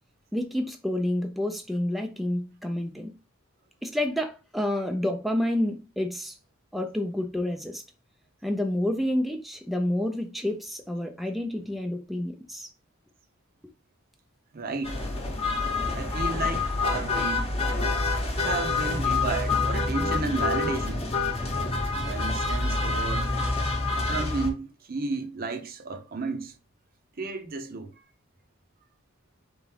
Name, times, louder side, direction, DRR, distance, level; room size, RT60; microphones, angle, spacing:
voice 1, 0.3-3.1 3.8-6.4 6.7-7.8 8.4-12.7, left 1 dB, ahead, 0.4 m, -29 dB
voice 2, 14.5-15.1 15.9-17.6 18.4-21.1 21.9-23.4 24.1-26.5 27.2-27.9, right 3 dB, 45° right, 0.7 m, -33 dB
sound 1, 14.8-24.5, left 3 dB, 30° left, 0.9 m, -27 dB
3.9 x 3.5 x 3.2 m
head